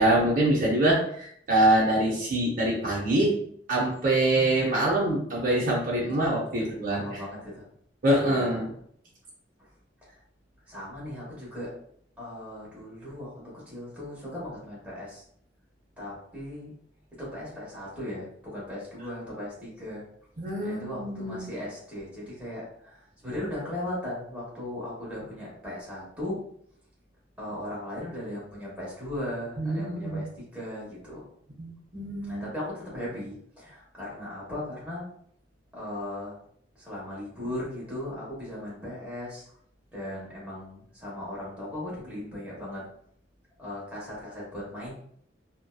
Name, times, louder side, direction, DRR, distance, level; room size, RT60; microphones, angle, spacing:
voice 1, 0.0-3.3 3.7-7.2 8.0-8.7 20.4-21.5 29.6-30.2 31.6-32.4, right 1 dB, 50° right, -4 dB, 0.6 m, -25 dB
voice 2, 6.6-7.7 8.3-8.5 10.7-11.7 12.2-15.2 16.0-16.8 17.2-20.0 20.6-26.4 27.4-31.2 32.2-35.1 35.7-36.4 36.8-39.4 39.9-42.8 43.6-44.9, left 1 dB, 10° right, -7 dB, 1.0 m, -37 dB
2.7 x 2.1 x 2.2 m, 0.66 s
head